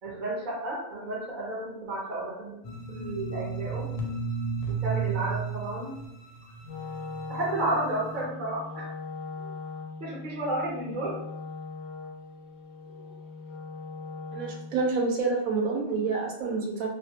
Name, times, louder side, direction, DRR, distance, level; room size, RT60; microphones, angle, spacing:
voice 1, 0.0-2.6 2.9-3.9 4.8-6.0 7.3-8.9 9.4-9.5 10.0-11.2 13.0-13.1, right 1 dB, 50° right, -5 dB, 0.6 m, -32 dB
sound 1, 2.6-7.8, right 5 dB, 85° left, 1.1 m, -33 dB
Wind instrument woodwind instrument, 6.6-14.8, left 4 dB, 65° left, 0.6 m, -40 dB
voice 2, 14.3-16.9, right 4 dB, 75° right, 0 dB, 1.0 m, -28 dB
2.4 x 2.1 x 2.7 m, 0.84 s
omnidirectional pair, 1.6 m